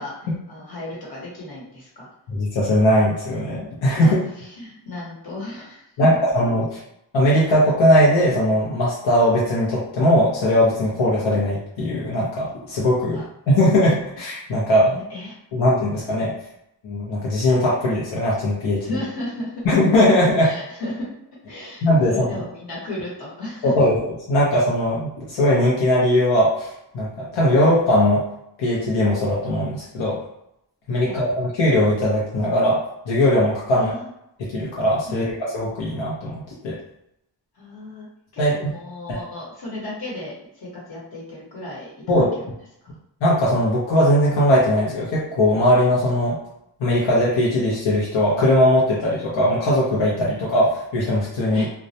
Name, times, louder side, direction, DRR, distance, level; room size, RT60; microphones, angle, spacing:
voice 1, 0.5-2.1 4.0-5.8 13.1-13.2 14.9-15.4 18.8-19.6 20.4-21.1 21.5-23.9 31.0-31.2 33.7-34.1 35.1-35.3 37.5-38.1 38.3-42.5 42.8-42.9 51.5-51.7, left 1 dB, 55° left, -5 dB, 1.1 m, -34 dB
voice 2, 2.3-4.2 6.0-6.6 7.1-13.2 13.5-15.0 15.5-16.3 16.8-18.8 19.6-20.5 21.8-22.1 23.8-23.9 24.3-26.7 26.9-28.2 28.6-30.2 30.9-32.8 33.1-33.9 34.4-36.3 36.6-36.8 38.4-38.5 42.1-42.3 43.2-46.4 46.8-51.7, left 1 dB, 85° left, -6 dB, 0.7 m, -19 dB
2.2 x 2.0 x 2.7 m, 0.80 s
wide cardioid pair, 115°, 44 cm